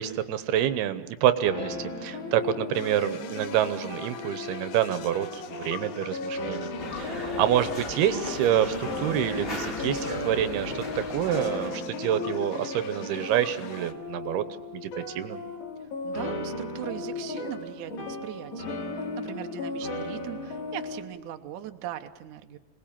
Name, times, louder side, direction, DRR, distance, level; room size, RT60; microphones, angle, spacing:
voice 1, 0.0-1.8 2.0-14.4 14.7-14.9 15.2-15.4, right 11 dB, 85° right, 12 dB, 2.9 m, -27 dB
sound 1, 1.4-21.0, left 2 dB, 50° left, 3.8 m, -36 dB
sound 2, 2.7-13.9, left 10 dB, 85° left, 3.0 m, -44 dB
sound 3, 6.8-11.9, left 1 dB, 20° left, 2.0 m, -38 dB
voice 2, 16.0-22.6, right 11 dB, 70° right, 6 dB, 2.1 m, -39 dB
26.0 x 19.5 x 7.3 m, 1.1 s
omnidirectional pair, 4.5 m